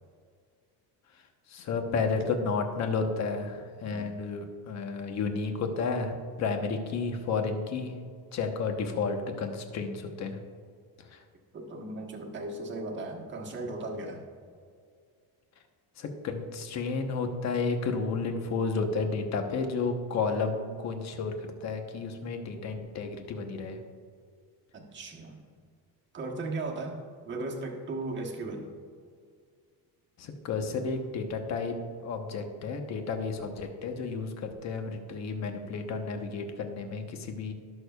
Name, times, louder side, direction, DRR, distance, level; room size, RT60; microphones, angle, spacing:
voice 1, 1.5-7.9 8.3-10.4 11.1-11.2 16.0-21.3 21.6-23.8 30.2-31.7 32.0-37.5, left 4 dB, 45° left, 5 dB, 1.0 m, -32 dB
voice 2, 11.5-14.2 24.7-25.4 26.1-28.7, right 2 dB, 30° right, 1 dB, 1.2 m, -37 dB
18.5 x 6.5 x 2.4 m, 2.2 s
cardioid pair, 175°, 39 cm